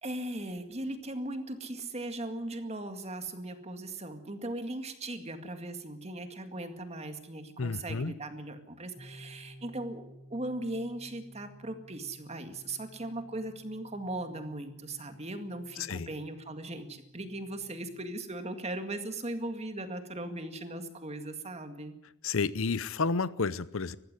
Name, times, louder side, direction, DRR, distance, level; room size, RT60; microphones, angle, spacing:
voice 1, 0.0-10.0 10.3-22.0, right 1 dB, 30° right, 7 dB, 2.1 m, -38 dB
voice 2, 7.6-8.1 15.8-16.1 22.2-24.0, left 4 dB, 70° left, 17 dB, 0.7 m, -31 dB
sound 1, 8.9-18.1, equal, 10° left, 7.0 m, -54 dB
20.0 x 15.0 x 9.8 m, 0.84 s
head